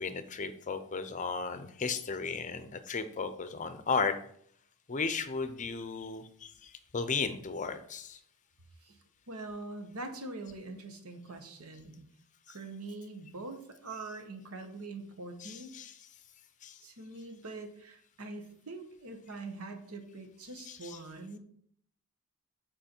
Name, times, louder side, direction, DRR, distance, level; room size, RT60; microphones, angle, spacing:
voice 1, 0.0-4.2 4.9-8.2 12.5-12.6 13.9-14.1 15.4-16.1 16.6-16.8 20.6-21.0, left 5 dB, 35° left, 11 dB, 0.6 m, -35 dB
voice 2, 9.3-12.1 12.5-15.7 16.8-21.4, right 2 dB, 80° right, 6 dB, 1.2 m, -43 dB
7.9 x 4.5 x 4.4 m, 0.64 s
head